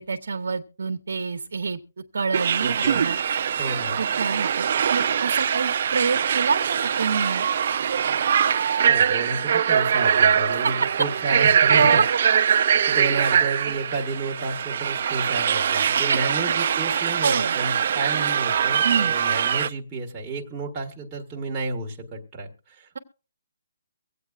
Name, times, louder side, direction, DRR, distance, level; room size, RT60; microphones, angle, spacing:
voice 1, 0.0-3.2 4.0-7.5 10.5-10.7 11.7-12.0 15.9-16.2 17.2-17.6 18.8-19.1, right 5 dB, 65° right, 4 dB, 0.9 m, -26 dB
sound 1, 2.3-19.7, right 8 dB, 45° right, 0.5 m, -22 dB
voice 2, 2.6-3.0 3.6-4.0 8.8-11.9 12.5-23.0, right 3 dB, 15° right, -1 dB, 1.4 m, -31 dB
sound 2, 2.8-5.6 5.9-6.0, left 2 dB, 80° left, 6.8 m, -47 dB
24.0 x 8.2 x 2.4 m, 0.33 s
hypercardioid pair, 165°, 0 cm